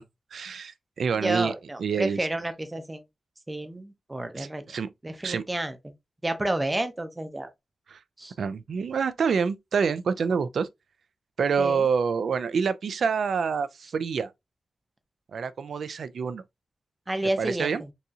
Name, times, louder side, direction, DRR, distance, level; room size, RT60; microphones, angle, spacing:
voice 1, 0.3-1.5 1.8-2.2 4.4-4.9 5.2-5.4 7.9-8.0 8.4-10.7 11.4-14.3 15.3-16.4 17.4-17.8, right 6 dB, 75° right, 0.4 m, -27 dB
voice 2, 1.2-3.0 3.5-4.6 5.0-5.8 6.2-7.5 8.2-8.3 11.6-11.8 17.1-17.9, right 1 dB, 15° right, 0.6 m, -30 dB
4.0 x 2.7 x 2.3 m
wide cardioid pair, 145°, 0 cm